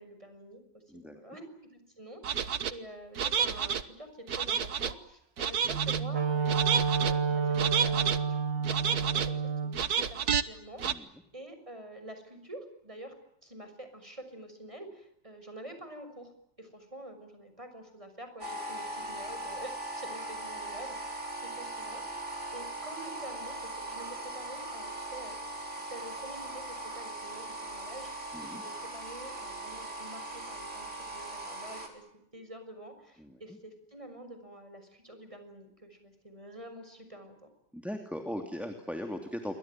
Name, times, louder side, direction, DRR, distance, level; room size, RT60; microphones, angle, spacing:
voice 1, 0.0-8.8 9.1-13.2 13.4-16.3 16.6-25.5 25.9-32.0 32.3-37.5, right 1 dB, 15° right, 8 dB, 6.4 m, -48 dB
sound 1, 2.2-2.7 3.2-3.8 4.3-4.9 5.4-6.0 6.5-7.1 7.6-8.2 8.6-9.3 9.7-10.4 10.8-10.9, right 7 dB, 60° right, 1.7 m, -29 dB
Wind instrument woodwind instrument, 5.7-9.8, right 5 dB, 80° right, 2.5 m, -29 dB
sound 2, 18.4-31.9, right 1 dB, 40° right, 4.9 m, -40 dB
voice 2, 37.7-39.6, equal, ahead, 5 dB, 2.8 m, -38 dB
28.5 x 24.5 x 7.6 m, 0.76 s
omnidirectional pair, 1.9 m